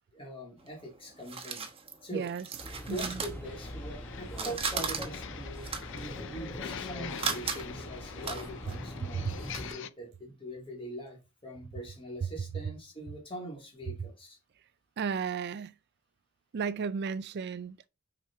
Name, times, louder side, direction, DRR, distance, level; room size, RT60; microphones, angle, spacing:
voice 1, 0.1-1.7 2.0-2.3 2.9-14.4, right 1 dB, 25° left, 3.3 m, -43 dB
sound 1, 0.6-4.0 4.3-9.7, right 5 dB, 25° right, 1.1 m, -38 dB
voice 2, 2.1-2.4 2.9-3.2 9.0-9.3 15.0-15.7 16.5-17.9, right 6 dB, 50° right, 0.4 m, -34 dB
sound 2, 2.6-9.7, equal, 10° left, 1.1 m, -43 dB
sound 3, 3.4-9.9, left 7 dB, 60° left, 0.5 m, -44 dB
6.2 x 5.0 x 4.4 m
head